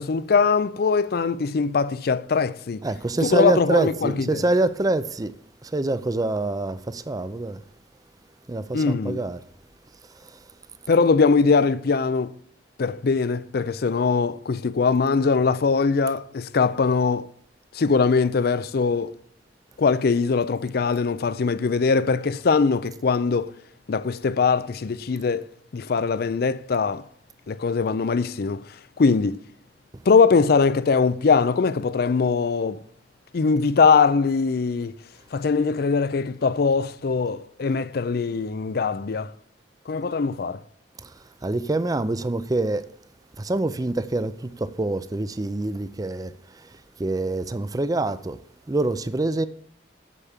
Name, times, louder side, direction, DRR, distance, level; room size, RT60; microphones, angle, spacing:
voice 1, 0.0-2.8 3.2-4.4 8.7-9.2 10.9-12.3 12.8-17.3 17.7-19.1 19.8-23.5 23.9-25.4 25.7-27.0 27.5-28.6 29.0-29.4 30.1-32.8 33.3-34.9 35.3-39.3 39.9-40.6, left 5 dB, 60° left, 0.5 m, -21 dB
voice 2, 2.8-5.3 5.6-7.6 8.5-9.4 41.0-41.1 41.4-42.9 43.4-46.3 47.0-48.4 48.7-49.5, right 2 dB, 20° right, 0.5 m, -25 dB
8.3 x 7.1 x 7.2 m
head